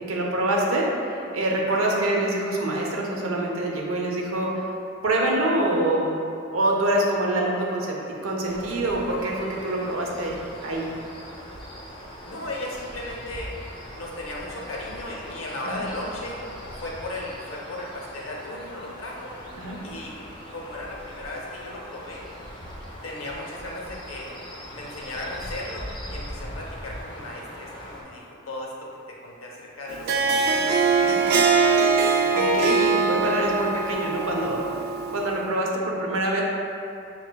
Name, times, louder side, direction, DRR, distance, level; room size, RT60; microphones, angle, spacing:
voice 1, 0.1-0.8 1.3-4.5 5.0-6.2 6.5-10.8 15.6-15.8 19.6-19.8 31.0-31.2 32.3-34.6 35.1-36.4, right 1 dB, 75° right, -1 dB, 0.7 m, -25 dB
sound 1, 8.5-28.0, equal, 25° left, 0.6 m, -40 dB
voice 2, 12.2-13.5 13.9-16.4 16.7-19.4 19.8-20.1 20.5-22.3 23.0-24.3 24.7-32.0, left 1 dB, 70° left, -2 dB, 0.7 m, -36 dB
Harp, 29.9-35.3, right 4 dB, 50° right, 0.3 m, -22 dB
5.6 x 3.2 x 2.2 m, 2.5 s
head